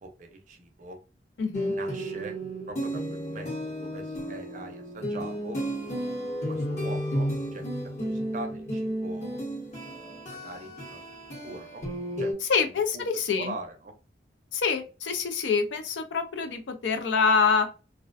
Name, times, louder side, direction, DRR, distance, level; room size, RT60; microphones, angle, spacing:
voice 1, 0.0-1.0 1.6-2.4 2.7-5.6 6.5-7.6 8.0-9.4 9.8-11.0 11.4-11.9 12.2-12.3 12.9-13.1 13.4-13.9, right 2 dB, 45° right, 5 dB, 0.5 m, -42 dB
voice 2, 1.4-1.7 12.4-13.5 14.5-17.7, left 5 dB, 80° left, 7 dB, 0.4 m, -26 dB
sound 1, 1.5-12.3, equal, 40° left, 0.9 m, -33 dB
2.4 x 2.1 x 2.4 m, 0.34 s
head